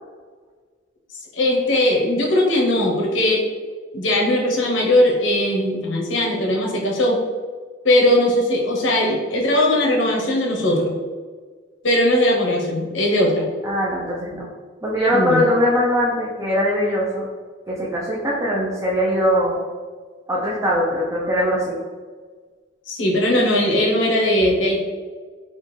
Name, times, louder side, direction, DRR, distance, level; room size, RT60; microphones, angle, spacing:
voice 1, 1.3-3.4 3.9-7.2 7.8-10.9 11.8-13.5 15.1-15.4 22.9-24.8, left 1 dB, 75° left, -1 dB, 0.8 m, -19 dB
voice 2, 13.6-14.5 14.8-17.3 17.7-19.6 20.3-21.8, equal, 15° right, -5 dB, 0.5 m, -21 dB
4.3 x 2.3 x 3.1 m, 1.5 s
head